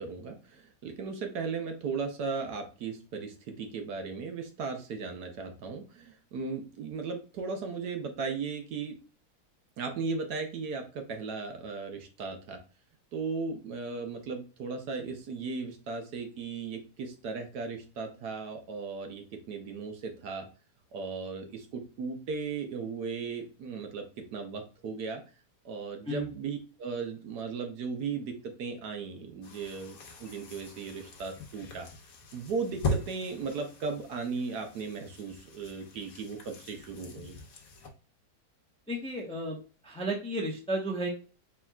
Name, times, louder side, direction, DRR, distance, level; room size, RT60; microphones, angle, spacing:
voice 1, 0.0-9.0 9.8-12.6 13.1-20.5 20.9-25.2 25.6-31.9 32.3-37.4, right 4 dB, 65° right, 5 dB, 1.3 m, -36 dB
sound 1, 29.4-37.9, left 2 dB, 55° left, 1.2 m, -40 dB
voice 2, 38.9-39.6 39.8-41.1, right 1 dB, 5° left, 0 dB, 0.7 m, -33 dB
4.6 x 3.8 x 2.3 m, 0.35 s
omnidirectional pair, 1.9 m